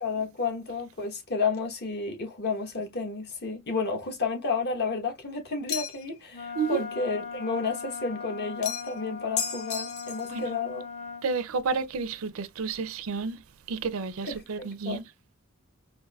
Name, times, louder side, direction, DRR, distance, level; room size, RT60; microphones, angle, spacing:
voice 1, 0.0-10.9 14.3-15.0, left 4 dB, 50° left, 1.0 m, -31 dB
sound 1, 5.7-6.2 8.6-9.0 9.4-10.3, left 7 dB, 80° left, 0.8 m, -33 dB
Wind instrument woodwind instrument, 6.3-11.3, left 5 dB, 30° left, 0.6 m, -39 dB
voice 2, 11.2-13.4 13.7-15.0, right 5 dB, 75° right, 0.5 m, -31 dB
4.6 x 2.6 x 2.3 m
head